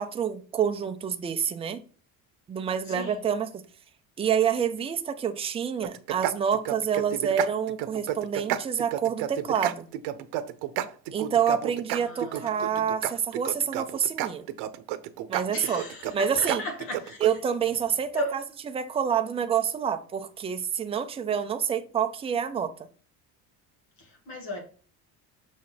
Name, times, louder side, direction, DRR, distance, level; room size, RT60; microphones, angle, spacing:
voice 1, 0.0-1.8 2.5-3.6 4.2-9.9 11.1-14.5 15.3-15.8 16.1-16.6 17.2-18.4 18.7-22.7, right 7 dB, 15° right, 0.4 m, -27 dB
voice 2, 2.8-3.2 11.9-12.8 15.5-17.3 18.1-18.4 24.0-24.6, equal, 60° left, 2.4 m, -36 dB
sound 1, 5.8-17.3, right 13 dB, 85° right, 0.7 m, -31 dB
6.1 x 4.3 x 4.6 m
cardioid pair, 160°, 39 cm